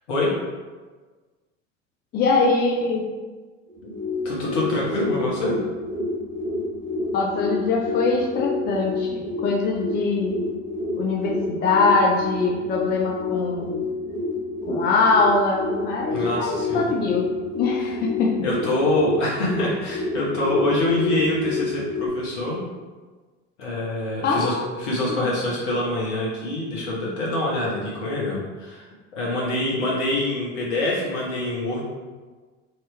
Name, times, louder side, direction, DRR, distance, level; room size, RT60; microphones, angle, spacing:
voice 1, 2.1-3.0 7.1-10.4 11.0-13.8 14.7-18.4 24.2-24.7 25.1-25.3, left 3 dB, 25° left, -1 dB, 0.5 m, -23 dB
sound 1, 3.7-22.1, left 3 dB, 80° right, 0.8 m, -28 dB
voice 2, 4.2-5.5 16.1-17.0 18.4-22.6 23.6-28.9 29.1-31.8, left 1 dB, 65° left, -5 dB, 1.3 m, -25 dB
3.2 x 3.0 x 3.2 m, 1.4 s
figure-of-eight pair, 70°, 38 cm